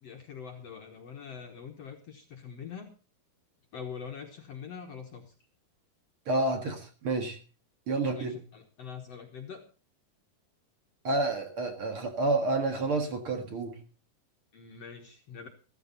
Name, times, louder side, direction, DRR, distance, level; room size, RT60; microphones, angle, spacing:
voice 1, 0.0-2.9 3.7-5.3 8.2-9.6 14.5-15.5, left 6 dB, 60° left, 3 dB, 1.8 m, -44 dB
voice 2, 6.3-7.4 7.9-8.4 11.0-13.8, right 2 dB, 45° right, 5 dB, 2.1 m, -29 dB
15.0 x 14.5 x 4.0 m, 0.34 s
omnidirectional pair, 4.2 m